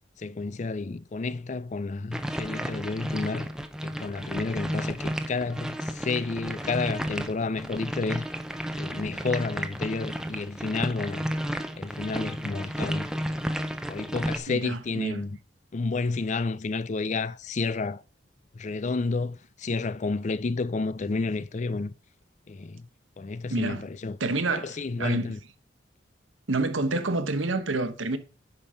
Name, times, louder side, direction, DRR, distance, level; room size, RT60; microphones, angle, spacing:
voice 1, 0.2-3.5 3.8-8.3 8.8-11.2 11.8-13.1 13.9-15.4 15.7-18.0 18.5-21.9 22.5-22.9 23.2-24.2 24.5-25.4, left 3 dB, 40° left, 0.4 m, -31 dB
sound 1, 2.1-14.4, equal, 5° right, 0.8 m, -32 dB
voice 2, 14.5-15.2 23.5-23.9 24.2-25.3 26.5-28.2, right 2 dB, 85° right, 1.1 m, -28 dB
10.0 x 5.3 x 5.6 m
head